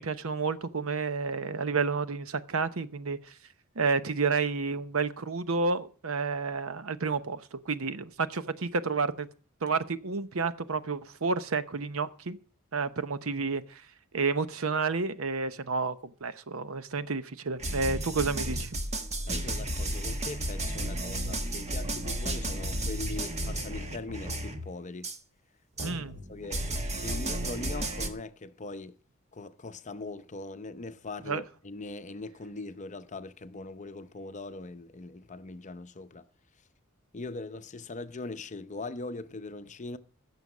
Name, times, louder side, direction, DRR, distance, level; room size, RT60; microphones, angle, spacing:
voice 1, 0.0-3.2 3.8-9.3 9.6-12.4 12.7-13.8 14.1-16.0 16.2-18.7 25.8-26.1 31.3-31.4, right 4 dB, 70° right, 0.8 m, -30 dB
sound 1, 17.6-24.7 25.0-25.2 25.8-28.1, right 1 dB, 30° right, 1.5 m, -33 dB
voice 2, 19.3-25.1 25.8-26.0 26.3-26.7 27.0-29.0 29.3-36.3 37.1-40.0, left 3 dB, 35° left, 0.7 m, -41 dB
16.0 x 7.0 x 6.1 m
head